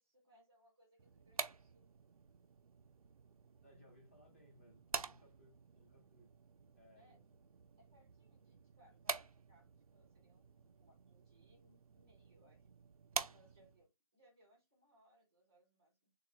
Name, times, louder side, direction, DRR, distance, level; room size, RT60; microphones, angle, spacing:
voice 1, 0.0-2.0 6.9-7.2 7.8-12.7 13.2-16.1, equal, 5° right, 0.6 m, -70 dB
sound 1, 1.0-13.9, right 5 dB, 70° right, 0.5 m, -48 dB
voice 2, 3.6-6.3 6.8-7.3, left 1 dB, 20° left, 1.0 m, -66 dB
3.5 x 2.4 x 3.0 m
hypercardioid pair, 180°, 19 cm